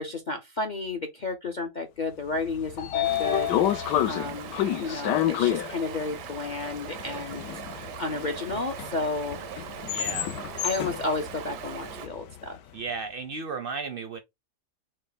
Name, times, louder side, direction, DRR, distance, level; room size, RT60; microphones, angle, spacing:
voice 1, 0.0-9.4 10.6-12.6, left 3 dB, 65° left, 0.4 m, -32 dB
Train / Sliding door, 2.3-12.5, left 12 dB, 90° left, 1.3 m, -30 dB
Stream, 3.0-12.1, right 9 dB, 90° right, 1.3 m, -40 dB
voice 2, 9.9-10.3 12.7-14.2, right 4 dB, 60° right, 0.5 m, -34 dB
6.2 x 2.2 x 4.0 m
omnidirectional pair, 1.8 m